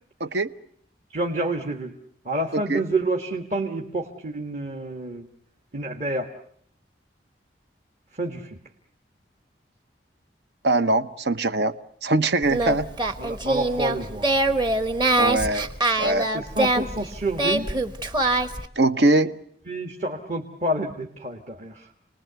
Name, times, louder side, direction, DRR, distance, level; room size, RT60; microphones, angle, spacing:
voice 1, 0.2-0.5 2.5-2.8 10.6-11.8 12.0-12.9 15.2-15.7 16.0-16.3 18.8-19.4, right 2 dB, 70° right, 12 dB, 1.0 m, -22 dB
voice 2, 1.1-1.9 2.2-5.2 5.7-6.3 8.2-8.6 13.2-14.3 16.3-17.7 19.7-21.9, right 2 dB, 40° right, 3 dB, 1.6 m, -28 dB
Singing, 12.4-18.7, right 2 dB, 25° right, 1.2 m, -24 dB
29.0 x 20.0 x 8.1 m, 0.66 s
head